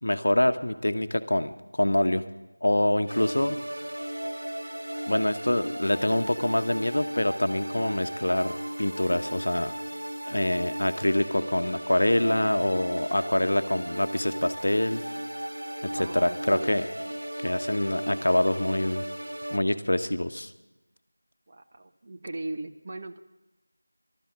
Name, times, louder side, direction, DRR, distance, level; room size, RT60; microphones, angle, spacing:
voice 1, 0.0-2.2 2.6-3.6 5.1-9.7 10.3-15.0 15.8-16.9 17.4-19.0 19.5-20.5, left 1 dB, 65° left, 9 dB, 1.0 m, -25 dB
sound 1, 3.1-19.6, equal, 85° right, 0.5 m, -36 dB
voice 2, 15.9-16.8 21.5-23.2, right 2 dB, 30° right, 7 dB, 0.6 m, -38 dB
14.0 x 12.0 x 7.3 m, 1.1 s
figure-of-eight pair, 175°, 0 cm